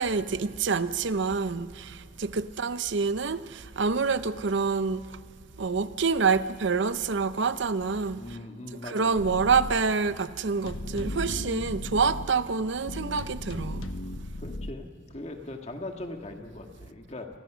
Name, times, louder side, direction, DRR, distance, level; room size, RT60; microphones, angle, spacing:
voice 1, 0.0-5.1 5.6-8.4 8.8-13.9, right 5 dB, 60° right, 0.6 m, -27 dB
voice 2, 8.2-9.2 14.4-17.3, left 2 dB, 30° left, 1.7 m, -40 dB
sound 1, 9.2-9.8 10.7-12.3 12.9-14.7, left 1 dB, 85° left, 1.2 m, -36 dB
28.5 x 20.0 x 6.2 m
head